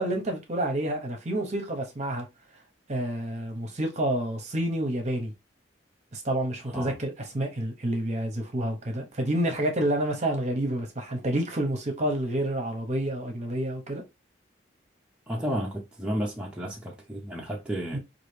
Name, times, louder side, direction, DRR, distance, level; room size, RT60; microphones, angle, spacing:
voice 1, 0.0-2.3 2.9-5.3 6.1-14.0 17.9-18.0, right 1 dB, 35° right, 0.9 m, -29 dB
voice 2, 15.3-18.0, equal, 5° right, 0.6 m, -32 dB
4.6 x 2.5 x 3.2 m
head